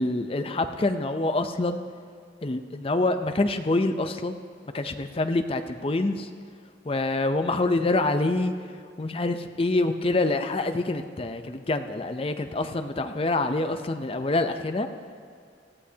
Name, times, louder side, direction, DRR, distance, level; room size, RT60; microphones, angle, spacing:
voice 1, 0.0-1.8 2.4-4.4 4.7-6.3 6.9-8.5 9.0-14.9, left 2 dB, 30° left, 8 dB, 0.5 m, -26 dB
18.5 x 14.0 x 2.8 m, 2.3 s
head